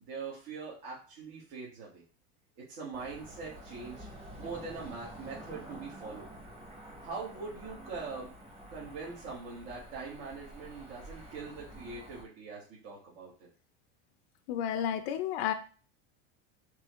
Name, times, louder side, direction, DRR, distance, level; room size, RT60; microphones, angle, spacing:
voice 1, 0.1-2.0 2.6-4.1 4.4-6.3 7.0-8.3 8.7-13.5, right 4 dB, 65° right, -7 dB, 1.7 m, -42 dB
Cricket / Motor vehicle (road), 2.9-12.2, right 1 dB, 20° right, 1.2 m, -49 dB
voice 2, 14.5-15.5, left 10 dB, 75° left, 8 dB, 0.6 m, -31 dB
4.6 x 3.1 x 3.0 m, 0.39 s
supercardioid pair, 130°, 31 cm